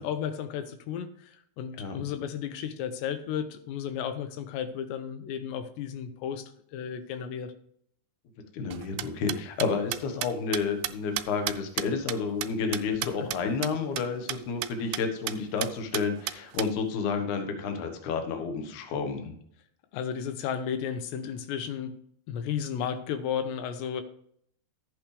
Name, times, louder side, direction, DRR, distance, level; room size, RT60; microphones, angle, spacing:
voice 1, 0.0-7.5 13.2-13.3 19.9-21.9 22.3-24.0, left 8 dB, 85° left, 10 dB, 3.0 m, -33 dB
voice 2, 8.5-19.3, left 5 dB, 60° left, 5 dB, 2.2 m, -30 dB
sound 1, 8.7-13.4 13.6-13.7 14.0-14.1 14.3-14.4 14.6-15.0 15.3-15.4 15.6-16.7, right 15 dB, 80° right, 2.6 m, -32 dB
12.0 x 8.4 x 3.3 m, 0.65 s
omnidirectional pair, 4.9 m